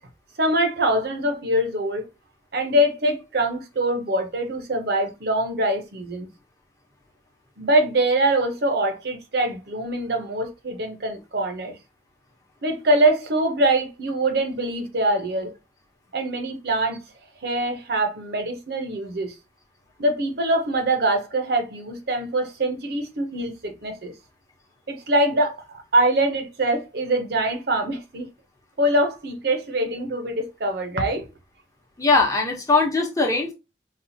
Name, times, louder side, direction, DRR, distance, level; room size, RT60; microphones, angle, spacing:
voice 1, 0.4-2.1 2.5-6.3 7.6-11.8 12.6-15.5 16.1-17.0 17.4-19.3 20.0-24.1 24.9-28.3 28.8-31.3, right 1 dB, 65° right, 0.7 m, -23 dB
voice 2, 32.0-33.5, left 3 dB, 20° left, 0.8 m, -20 dB
4.1 x 2.3 x 2.7 m
head